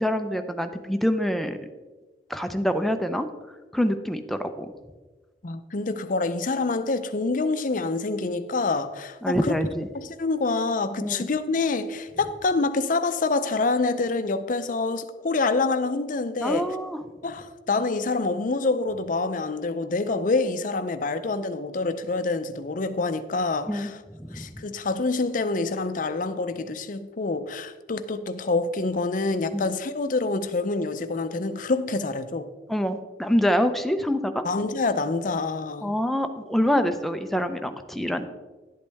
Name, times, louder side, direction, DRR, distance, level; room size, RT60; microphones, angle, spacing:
voice 1, 0.0-1.6 2.3-3.3 3.7-4.7 9.2-9.9 11.0-11.3 16.4-17.0 23.7-23.9 24.2-24.5 29.5-29.6 32.7-34.4 35.8-38.3, equal, ahead, 0.5 m, -25 dB
voice 2, 5.4-9.6 9.9-16.7 17.2-24.0 24.3-32.5 34.4-36.0, left 3 dB, 50° left, 0.6 m, -26 dB
11.0 x 8.2 x 3.4 m
head